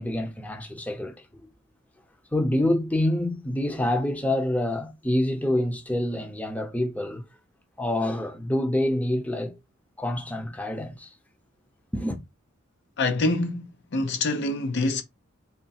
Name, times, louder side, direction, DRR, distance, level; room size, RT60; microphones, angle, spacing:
voice 1, 0.0-1.4 2.3-7.2 7.8-9.5 10.0-11.1 11.9-12.2, left 1 dB, 5° left, 0.7 m, -27 dB
voice 2, 13.0-15.0, left 2 dB, 55° left, 0.6 m, -26 dB
3.6 x 2.1 x 4.1 m
head